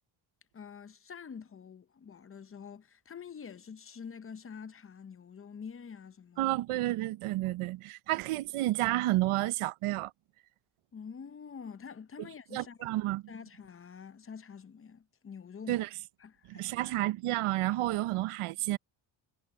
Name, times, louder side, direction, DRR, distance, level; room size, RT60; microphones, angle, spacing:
voice 1, 0.5-6.5 10.9-12.9 13.3-15.8 16.2-16.7, left 6 dB, 25° left, 0.7 m, -47 dB
voice 2, 6.4-10.1 12.2-12.3 12.5-13.2 15.7-15.9 16.5-18.8, right 17 dB, 80° right, 0.7 m, -30 dB
cardioid pair, 130°, 50 cm